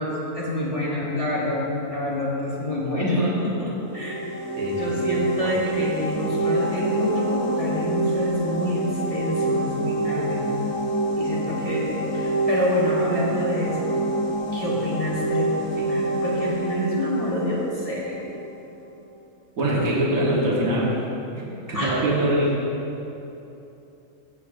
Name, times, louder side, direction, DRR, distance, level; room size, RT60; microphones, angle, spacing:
voice 1, 0.0-4.2 4.8-10.5 11.2-14.0 14.5-18.2 21.7-22.0, left 1 dB, 30° left, -6 dB, 1.1 m, -27 dB
sound 1, 3.8-18.5, right 2 dB, 75° left, 1.4 m, -26 dB
voice 2, 4.6-5.5 19.6-20.9 21.3-21.4 21.7-22.6, right 1 dB, 80° right, -5 dB, 1.7 m, -23 dB
15.0 x 6.0 x 2.6 m, 2.9 s
omnidirectional pair, 1.4 m